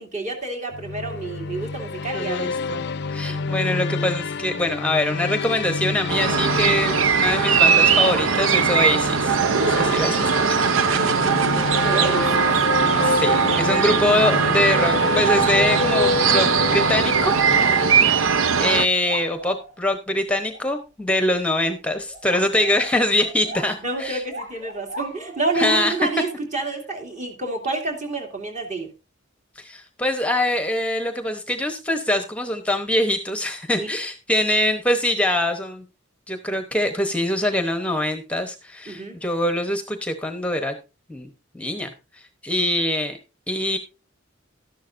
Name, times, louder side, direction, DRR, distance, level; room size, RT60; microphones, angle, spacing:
voice 1, 0.0-2.5 3.3-3.5 11.8-12.5 17.6-17.9 23.8-28.9 33.8-33.9 38.9-39.2, right 3 dB, 40° right, 2 dB, 2.7 m, -29 dB
sound 1, 0.7-18.4, left 4 dB, 60° left, 0.5 m, -28 dB
voice 2, 2.1-2.8 3.1-10.7 13.0-17.8 18.6-24.2 25.6-26.1 29.6-35.8 36.3-40.7 41.1-41.3 41.5-43.2 43.5-43.8, left 1 dB, 5° left, 7 dB, 0.9 m, -24 dB
sound 2, 6.1-18.9, right 6 dB, 85° right, 0.6 m, -20 dB
sound 3, 7.7-9.0 9.6-9.8 10.3-10.5 11.0-11.7 12.1-14.3 14.9-15.0 15.3-18.0 18.3-18.4 18.7-19.8 20.5-20.7 21.5-21.7 22.1-26.1, right 1 dB, 70° right, 3.5 m, -38 dB
12.5 x 11.0 x 2.6 m, 0.28 s
head